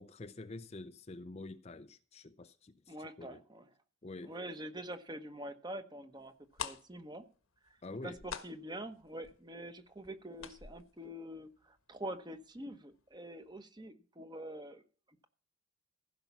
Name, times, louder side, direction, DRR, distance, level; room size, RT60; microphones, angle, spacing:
voice 1, 0.0-3.4 4.0-4.4 7.8-8.2, left 2 dB, 30° left, 0.5 m, -47 dB
voice 2, 2.9-3.7 4.2-6.3 6.6-7.2 8.0-14.8, right 1 dB, 20° right, 1.1 m, -45 dB
sound 1, 6.3-6.4 6.5-12.1 12.4-12.5 12.9-13.1 13.4-13.5, left 6 dB, 75° left, 1.3 m, -46 dB
15.5 x 5.7 x 7.1 m
head